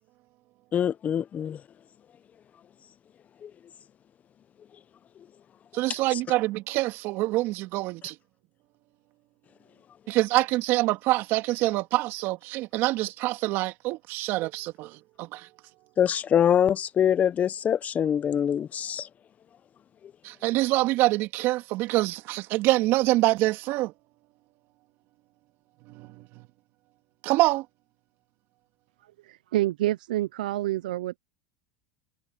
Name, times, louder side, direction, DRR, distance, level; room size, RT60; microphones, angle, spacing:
voice 1, 0.7-1.6 3.4-3.5 6.1-6.2 16.0-19.1, left 9 dB, 35° left, 1.1 m, -24 dB
voice 2, 5.7-8.1 10.1-15.5 20.2-23.9 25.9-26.2 27.2-27.7, right 18 dB, 60° right, 2.3 m, -25 dB
voice 3, 29.3-31.2, right 15 dB, 85° right, 0.5 m, -27 dB
hypercardioid pair, 100°, 4 cm